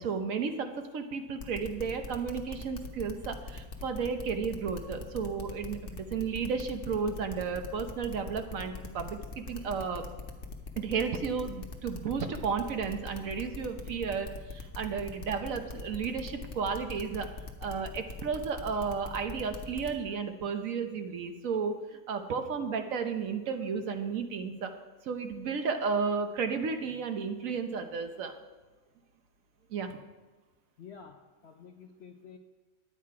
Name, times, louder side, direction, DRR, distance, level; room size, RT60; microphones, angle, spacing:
voice 1, 0.0-10.0 10.8-17.3 17.6-24.7 25.0-28.3 29.7-30.0, right 5 dB, 65° right, 7 dB, 1.1 m, -33 dB
sound 1, 1.4-19.9, left 3 dB, 40° left, 1.1 m, -41 dB
voice 2, 30.8-31.2 31.4-32.4, left 6 dB, 60° left, 4 dB, 0.7 m, -49 dB
11.5 x 8.4 x 4.7 m, 1.2 s
omnidirectional pair, 1.7 m